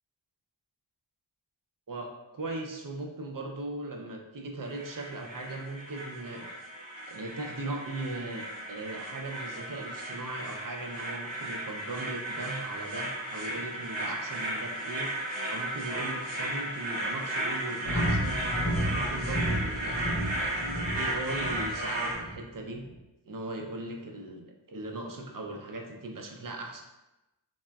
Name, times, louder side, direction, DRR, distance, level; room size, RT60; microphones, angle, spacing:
voice 1, 1.9-6.5 7.1-15.1 15.5-18.4 18.8-22.8 23.3-26.8, right 2 dB, 45° right, 2 dB, 0.4 m, -38 dB
sound 1, 4.6-22.1, right 1 dB, 75° right, 0.8 m, -35 dB
sound 2, 17.8-22.4, equal, 45° left, 0.6 m, -32 dB
3.4 x 2.0 x 2.2 m, 1.0 s
wide cardioid pair, 45°, 46 cm